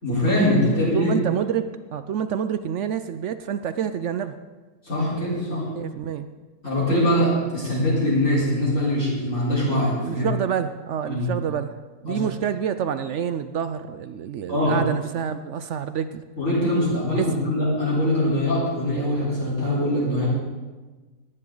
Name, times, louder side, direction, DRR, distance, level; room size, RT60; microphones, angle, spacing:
voice 1, 0.0-1.1 4.8-5.6 6.6-10.2 11.1-11.3 12.1-12.2 14.5-14.8 16.4-20.3, left 1 dB, 55° left, -8 dB, 4.7 m, -22 dB
voice 2, 0.9-4.4 5.8-6.3 10.0-11.8 12.0-16.2 17.1-17.3, right 8 dB, 65° right, 11 dB, 0.7 m, -27 dB
18.5 x 10.5 x 3.9 m, 1.3 s
omnidirectional pair, 1.6 m